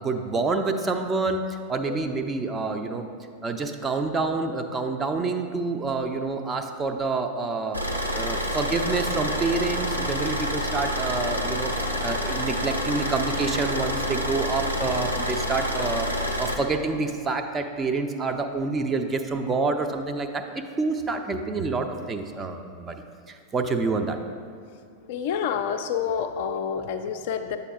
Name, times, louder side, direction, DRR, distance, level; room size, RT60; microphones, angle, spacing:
voice 1, 0.0-3.1 3.4-7.8 8.1-16.1 16.4-23.0 23.3-24.2, right 3 dB, 20° right, 5 dB, 0.4 m, -27 dB
Car / Idling, 7.7-16.5, equal, 90° right, 0.6 m, -28 dB
voice 2, 25.1-27.6, left 7 dB, 50° left, 7 dB, 0.3 m, -28 dB
8.2 x 6.7 x 2.4 m, 2.4 s
figure-of-eight pair, 90°, 0 cm